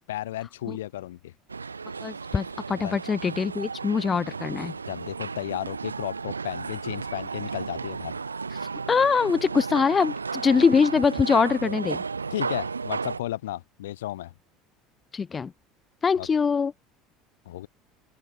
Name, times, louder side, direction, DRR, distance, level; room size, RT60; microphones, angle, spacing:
voice 1, 0.1-1.3 2.8-3.0 4.9-8.1 12.3-14.3 16.1-16.3 17.4-17.7, left 14 dB, 70° left, 1.4 m, -33 dB
sound 1, 1.5-13.2, right 4 dB, 85° right, 0.9 m, -34 dB
voice 2, 2.0-4.7 8.9-12.0 15.1-15.5 16.0-16.7, left 5 dB, 25° left, 1.1 m, -23 dB
open air
figure-of-eight pair, 65°, 0 cm